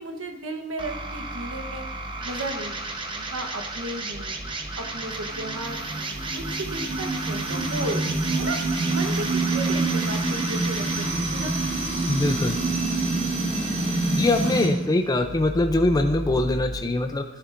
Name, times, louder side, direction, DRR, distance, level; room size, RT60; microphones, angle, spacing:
voice 1, 0.0-1.8 2.2-4.4 4.8-8.6 8.9-11.6 13.8-13.9, right 2 dB, 75° right, 3 dB, 1.1 m, -34 dB
sound 1, 0.8-16.8, right 2 dB, 25° right, 0.9 m, -34 dB
sound 2, 4.8-14.7, right 2 dB, 55° right, 2.8 m, -27 dB
voice 2, 12.0-12.6 14.2-17.2, left 2 dB, 20° left, 5 dB, 0.4 m, -23 dB
14.0 x 8.0 x 2.6 m, 1.1 s
head